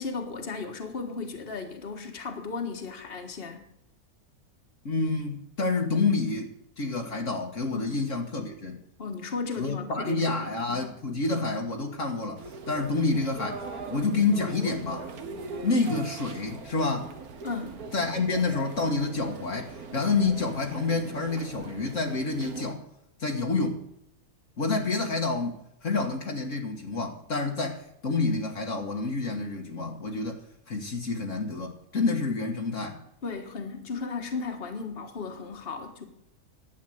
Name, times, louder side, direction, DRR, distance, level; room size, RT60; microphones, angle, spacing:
voice 1, 0.0-3.6 7.7-8.0 9.0-11.0 17.4-17.8 33.2-36.1, left 4 dB, 40° left, 1.8 m, -35 dB
voice 2, 4.9-6.5 6.8-8.8 9.6-15.1 15.6-17.1 17.9-22.8 23.2-23.8 24.6-30.4 30.7-33.0, left 3 dB, 60° left, 1.8 m, -28 dB
sound 1, 12.4-22.7, right 4 dB, 80° right, 1.8 m, -41 dB
11.5 x 8.4 x 7.8 m
omnidirectional pair, 1.6 m